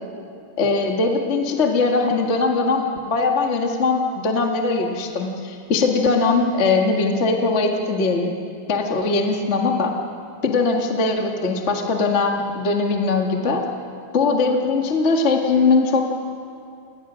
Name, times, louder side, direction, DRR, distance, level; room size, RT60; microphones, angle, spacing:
voice 1, 0.6-8.3 8.7-9.9 10.4-13.6 14.1-16.0, left 3 dB, 45° left, 1 dB, 0.9 m, -20 dB
28.5 x 20.0 x 6.3 m, 2.4 s
omnidirectional pair, 4.3 m